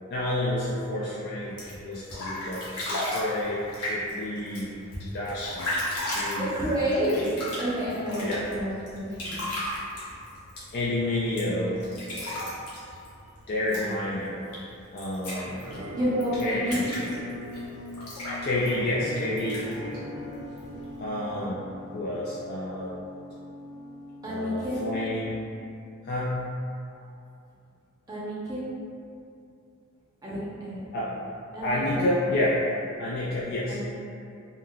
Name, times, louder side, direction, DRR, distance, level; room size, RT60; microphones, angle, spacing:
voice 1, 0.1-4.7 5.0-6.5 8.2-8.4 10.7-11.8 12.2-12.6 13.5-14.4 14.9-15.6 16.4-16.8 18.4-19.6 21.0-21.6 21.9-23.0 24.2-25.3 26.0-26.4 30.9-31.1 31.6-32.6 33.0-33.8, left 1 dB, 45° left, -7 dB, 0.3 m, -29 dB
sound 1, 1.4-21.0, left 1 dB, 85° left, 1.0 m, -36 dB
voice 2, 6.3-9.5 15.9-16.9 24.2-24.8 28.1-28.6 30.2-30.9 31.5-32.4 33.7-33.8, equal, 15° right, -9 dB, 0.6 m, -29 dB
Musical instrument, 15.6-25.4, left 1 dB, 75° right, 0.8 m, -40 dB
3.7 x 2.2 x 2.2 m, 2.5 s
head